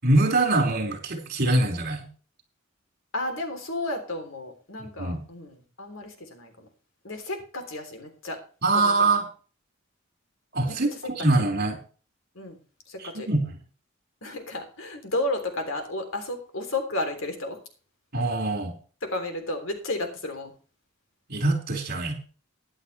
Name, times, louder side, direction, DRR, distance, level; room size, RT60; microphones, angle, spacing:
voice 1, 0.0-2.1 5.0-5.2 8.6-9.3 10.5-11.8 13.0-13.5 18.1-18.8 21.3-22.1, right 2 dB, 50° right, 1 dB, 5.2 m, -23 dB
voice 2, 3.1-6.7 7.0-8.4 8.7-8.9 10.7-10.8 12.4-12.6 12.9-13.3 14.2-17.6 19.0-20.5, left 2 dB, 75° left, 5 dB, 3.4 m, -32 dB
15.0 x 11.5 x 3.3 m, 0.38 s
head